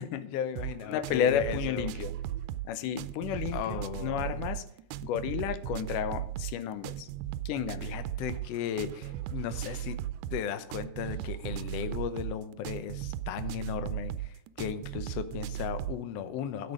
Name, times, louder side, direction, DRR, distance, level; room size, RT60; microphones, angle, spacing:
voice 1, 0.3-1.9 3.5-4.4 7.8-10.0 10.3-16.7, left 9 dB, 70° left, 11 dB, 1.7 m, -36 dB
sound 1, 0.6-16.0, right 12 dB, 90° right, 2.1 m, -37 dB
voice 2, 0.9-2.1 2.6-4.6 5.0-7.1 7.5-7.9, left 9 dB, 90° left, 13 dB, 2.3 m, -32 dB
12.5 x 8.4 x 4.9 m, 0.72 s
omnidirectional pair, 3.7 m